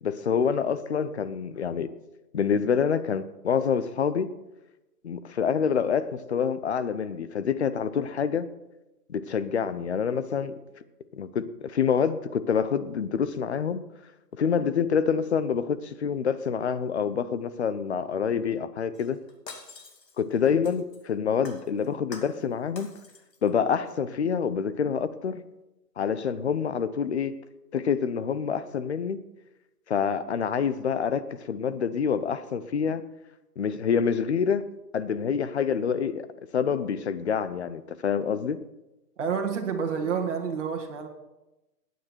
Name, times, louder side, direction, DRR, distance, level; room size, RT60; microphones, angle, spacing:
voice 1, 0.0-1.9 2.3-4.3 5.0-8.5 9.1-10.5 11.1-13.8 14.4-19.2 20.2-22.9 23.4-25.4 26.0-27.4 27.7-29.2 29.9-33.1 33.6-34.7 34.9-36.3 36.5-38.6, left 7 dB, 45° left, 14 dB, 0.7 m, -27 dB
Shatter, 18.9-21.1 21.4-22.5 22.8-23.5 23.9-24.0, left 4 dB, 85° left, 2.6 m, -46 dB
voice 2, 39.2-41.1, right 6 dB, 45° right, 4 dB, 2.0 m, -29 dB
17.5 x 9.4 x 4.5 m, 1.0 s
hypercardioid pair, 165°, 49 cm